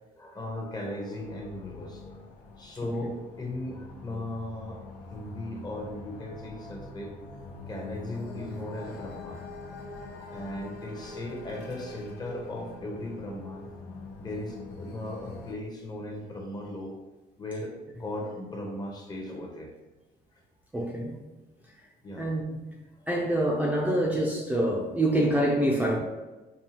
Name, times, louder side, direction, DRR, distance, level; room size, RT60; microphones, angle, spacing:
voice 1, 0.1-2.2 2.6-4.8 5.1-7.1 7.7-9.4 10.3-13.7 14.2-16.9 17.4-19.7 22.0-22.3 23.0-23.1, left 1 dB, 25° left, 1 dB, 0.8 m, -37 dB
sound 1, 1.2-15.5, left 3 dB, 70° left, 0.7 m, -44 dB
voice 2, 20.7-21.2 22.2-22.6 23.1-26.0, right 1 dB, 10° right, -3 dB, 0.6 m, -26 dB
5.3 x 2.3 x 2.8 m, 1.1 s
cardioid pair, 110°, 17 cm